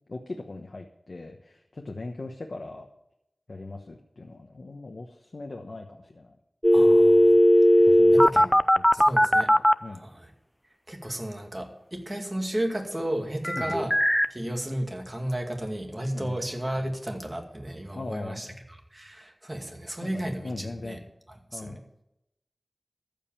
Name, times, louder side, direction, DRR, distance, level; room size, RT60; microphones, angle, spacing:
voice 1, 0.1-2.9 3.5-6.4 7.8-10.0 13.6-13.9 16.1-16.4 17.9-18.6 20.0-21.0 21.5-21.8, left 2 dB, 70° left, 2 dB, 1.1 m, -40 dB
sound 1, 6.6-9.7 13.4-14.3, equal, 5° left, 0.5 m, -17 dB
voice 2, 6.7-8.5 8.9-9.5 9.9-10.3 10.9-13.9 14.3-18.5 18.9-21.0 21.5-21.8, right 1 dB, 25° right, 2 dB, 2.3 m, -33 dB
14.0 x 5.3 x 8.9 m, 0.85 s
wide cardioid pair, 45°, 0 cm